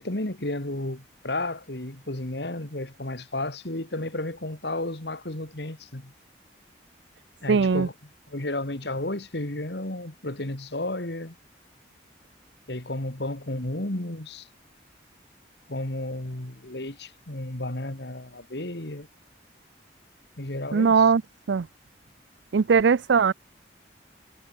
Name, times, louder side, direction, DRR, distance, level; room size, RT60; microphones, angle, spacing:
voice 1, 0.0-6.1 7.4-7.9 8.3-11.4 12.7-14.5 15.7-19.1 20.4-21.1, left 1 dB, 65° left, 2.5 m, -32 dB
voice 2, 7.5-7.9 20.7-21.2 21.5-21.7 22.5-23.3, right 5 dB, 75° right, 0.5 m, -20 dB
head